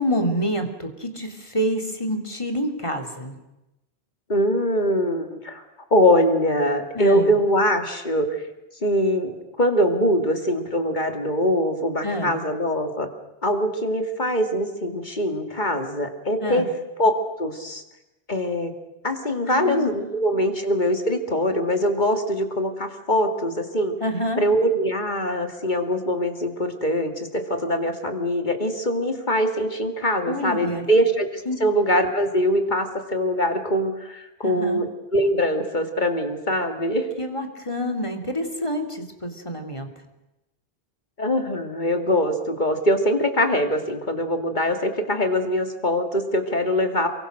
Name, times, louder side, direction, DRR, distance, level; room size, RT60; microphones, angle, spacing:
voice 1, 0.0-3.4 6.9-7.4 12.0-12.4 16.4-16.7 19.5-20.3 24.0-24.4 30.3-30.8 31.5-31.6 34.4-34.8 37.2-39.9, equal, 30° left, 4 dB, 2.9 m, -27 dB
voice 2, 4.3-5.6 5.9-8.3 8.8-13.1 13.4-16.7 17.0-17.1 17.4-17.8 18.3-18.7 19.0-24.0 24.4-34.9 35.1-37.1 41.2-47.1, equal, 45° left, 5 dB, 2.5 m, -23 dB
29.0 x 23.0 x 6.5 m, 0.96 s
omnidirectional pair, 1.1 m